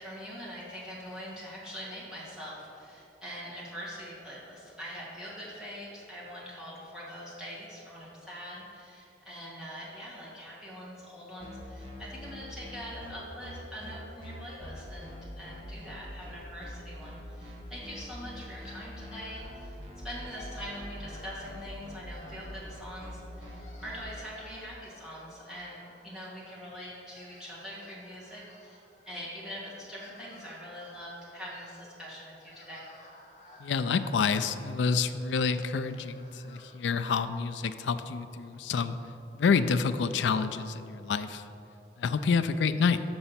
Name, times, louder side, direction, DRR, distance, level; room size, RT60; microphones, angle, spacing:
voice 1, 0.0-19.8 20.0-32.8, equal, 5° right, -8 dB, 1.8 m, -43 dB
sound 1, 11.4-24.0, left 1 dB, 30° right, 1.1 m, -44 dB
sound 2, 18.5-19.7 20.1-21.6 22.0-23.0 23.3-26.6 26.9-29.2 29.7-36.7, left 2 dB, 40° left, 1.0 m, -55 dB
voice 2, 33.6-39.0 39.3-41.4 42.0-43.0, left 5 dB, 90° left, 11 dB, 0.4 m, -28 dB
6.9 x 5.2 x 5.7 m, 2.8 s
head